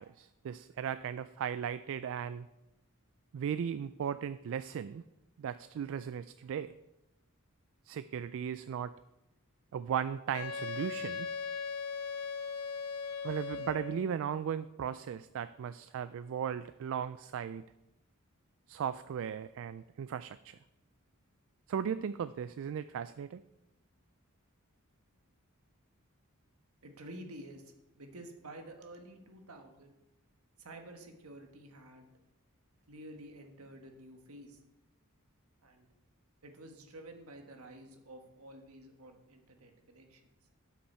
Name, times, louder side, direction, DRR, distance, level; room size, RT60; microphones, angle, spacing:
voice 1, 0.0-2.5 3.3-5.0 5.4-6.7 7.9-8.9 9.7-11.3 13.2-17.6 18.7-20.6 21.7-23.4, right 8 dB, 65° right, 13 dB, 0.3 m, -37 dB
Wind instrument woodwind instrument, 10.3-14.1, left 5 dB, 85° left, 0.6 m, -38 dB
voice 2, 26.8-29.9 30.6-32.1 32.9-34.6 35.6-35.9 36.4-40.2, right 1 dB, 80° right, 4 dB, 1.5 m, -50 dB
12.5 x 6.0 x 4.3 m, 0.94 s
head